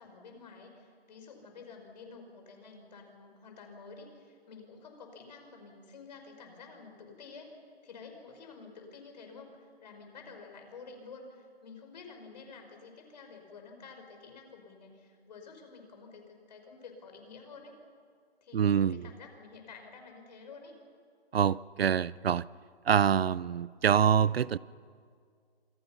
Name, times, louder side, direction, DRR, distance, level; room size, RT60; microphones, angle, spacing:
voice 1, 0.0-17.7 18.4-20.7, left 4 dB, 45° left, 5.5 m, -50 dB
voice 2, 18.5-19.0 21.3-22.5 22.9-24.6, right 8 dB, 70° right, 0.6 m, -25 dB
28.0 x 27.0 x 5.8 m
hypercardioid pair, 160°, 31 cm